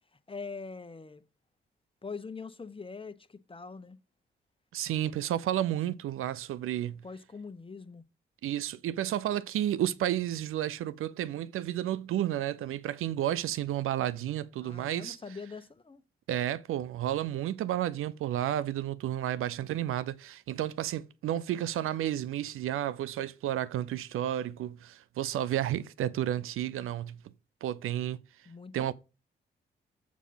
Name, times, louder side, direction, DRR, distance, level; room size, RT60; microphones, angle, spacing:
voice 1, 0.1-1.2 2.0-4.0 7.0-8.0 14.6-16.0 28.4-28.9, left 4 dB, 25° left, 1.0 m, -43 dB
voice 2, 4.7-7.0 8.4-15.2 16.3-27.2 27.6-28.2 28.7-28.9, right 12 dB, 80° right, 0.6 m, -31 dB
7.4 x 4.8 x 5.6 m
supercardioid pair, 45°, 21 cm